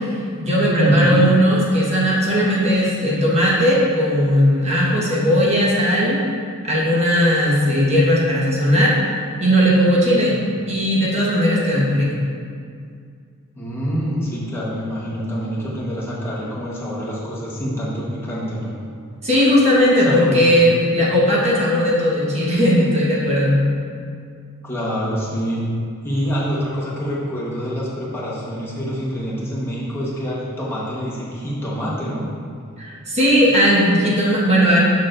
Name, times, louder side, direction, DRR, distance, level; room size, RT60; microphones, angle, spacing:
voice 1, 0.0-6.2 6.6-8.9 9.4-10.3 10.7-12.1 19.2-23.6 32.8-34.8, equal, 30° right, -6 dB, 1.4 m, -17 dB
voice 2, 0.7-1.3 10.3-10.5 13.6-18.7 20.0-20.5 24.6-25.7 26.0-32.3, equal, 10° left, -7 dB, 1.2 m, -25 dB
6.6 x 6.2 x 2.6 m, 2.3 s
head